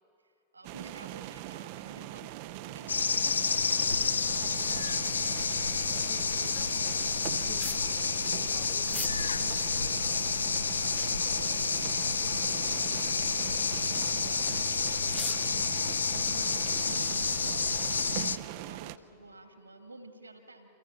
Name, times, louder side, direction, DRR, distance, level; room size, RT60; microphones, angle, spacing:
voice 1, 0.2-4.9 11.0-14.4 14.7-15.2 15.6-16.0 16.6-20.7, right 2 dB, 80° right, 6 dB, 2.3 m, -51 dB
sound 1, 0.6-19.0, right 15 dB, 45° right, 0.7 m, -41 dB
sound 2, 2.9-18.4, left 5 dB, 75° left, 0.7 m, -29 dB
voice 2, 6.1-9.3 9.6-10.2 15.5-15.7, left 8 dB, 40° left, 7 dB, 1.7 m, -52 dB
sound 3, 7.6-7.9 8.9-9.2 9.7-9.8 10.6-11.3 12.0-12.3 12.6-12.7 13.3-13.6 14.5-14.6 15.0-15.5, left 1 dB, 5° left, 0.7 m, -43 dB
29.0 x 27.0 x 5.8 m, 2.8 s
figure-of-eight pair, 90°, 0 cm